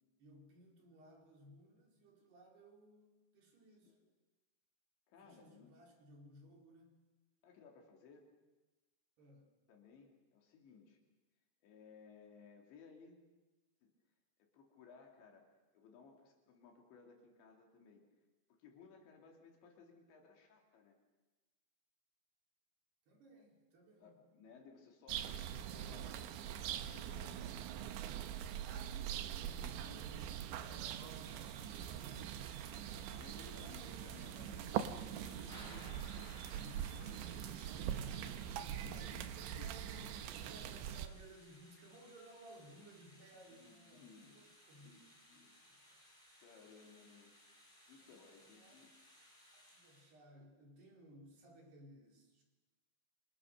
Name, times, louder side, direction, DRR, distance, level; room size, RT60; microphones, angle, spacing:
voice 1, 0.2-4.0 5.2-7.0 9.2-9.6 23.1-24.2 35.1-35.7 36.5-45.1 45.3-46.0 48.0-48.9 49.5-52.4, right 1 dB, 65° right, 0 dB, 6.2 m, -60 dB
voice 2, 5.1-5.7 7.4-8.3 9.7-11.0 11.6-13.2 13.8-13.9 14.4-18.0 18.5-20.9 23.3-23.4 24.0-27.6 29.3-32.2 33.1-36.1 38.5-39.7 43.5-44.4 44.8-45.5 46.4-47.3 47.9-48.9, left 5 dB, 80° left, 2 dB, 5.1 m, -60 dB
sound 1, 25.1-41.1, right 10 dB, 85° right, 3.4 m, -43 dB
Thunder / Rain, 30.6-50.1, equal, 10° left, 6.5 m, -62 dB
27.5 x 27.0 x 6.6 m, 1.2 s
omnidirectional pair, 5.0 m